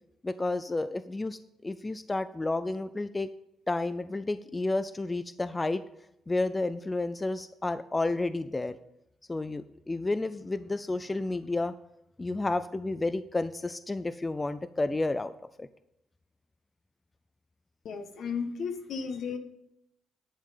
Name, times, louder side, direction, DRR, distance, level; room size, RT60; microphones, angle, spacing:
voice 1, 0.2-3.3 3.7-5.8 6.3-8.8 9.3-11.7 12.2-15.3 15.6-15.7, left 2 dB, 20° left, 13 dB, 0.4 m, -31 dB
voice 2, 17.8-19.4, left 5 dB, 65° left, 7 dB, 1.4 m, -34 dB
11.0 x 7.4 x 5.2 m, 0.82 s
cardioid pair, 90°, 0 cm